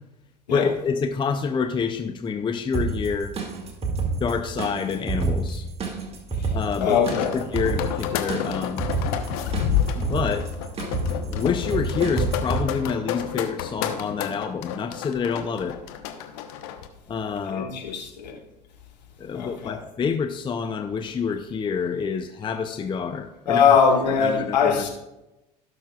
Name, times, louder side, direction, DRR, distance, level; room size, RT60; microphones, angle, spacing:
voice 1, 0.5-3.3 4.2-5.7 6.5-7.1 7.5-8.8 9.9-10.5 11.3-15.8 17.1-17.7 19.2-23.7 24.1-24.8, left 6 dB, 20° left, 0.6 m, -27 dB
sound 1, 2.7-12.6, right 3 dB, 30° right, 2.0 m, -29 dB
voice 2, 6.8-7.3 17.5-18.3 19.3-19.8 23.5-24.9, left 6 dB, 80° left, 1.7 m, -21 dB
sound 2, 6.8-16.9, left 9 dB, 60° left, 1.0 m, -29 dB
17.5 x 6.3 x 2.4 m
hypercardioid pair, 75°, 21 cm